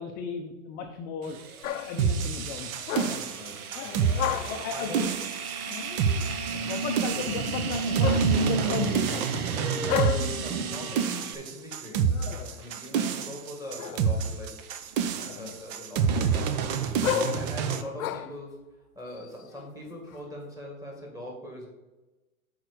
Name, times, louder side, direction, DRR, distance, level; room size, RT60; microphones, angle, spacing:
voice 1, 0.0-1.4 1.7-3.2 4.3-5.1 6.7-9.3, left 6 dB, 20° left, 2 dB, 0.6 m, -35 dB
sound 1, 1.2-11.3, right 4 dB, 85° right, 1.1 m, -34 dB
sound 2, 1.6-2.1 2.8-3.4 3.7-4.7 5.7-6.4 8.0-9.0 9.9-10.5 11.9-12.6 13.8-14.3 14.8-15.7 16.1-18.4 19.1-20.2, left 10 dB, 75° left, 0.6 m, -34 dB
sound 3, 2.0-17.8, right 6 dB, 30° right, 0.5 m, -28 dB
voice 2, 3.4-5.0 6.5-6.7 7.1-7.2 10.4-12.1 12.6-14.7 15.3-18.6 19.0-21.7, left 1 dB, 10° right, -1 dB, 2.0 m, -42 dB
6.0 x 4.8 x 6.5 m, 1.1 s
hypercardioid pair, 130°, 42 cm